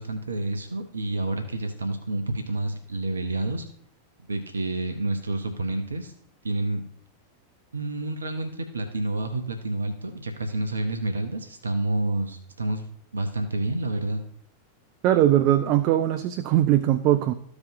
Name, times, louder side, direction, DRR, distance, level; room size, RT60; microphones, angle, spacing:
voice 1, 0.0-3.6 4.3-6.1 6.4-6.8 7.7-12.8 13.1-14.2, right 2 dB, 75° right, 6 dB, 0.7 m, -29 dB
voice 2, 15.0-17.3, right 12 dB, 40° right, 11 dB, 0.4 m, -20 dB
14.0 x 4.9 x 2.5 m, 0.66 s
figure-of-eight pair, 90°, 0 cm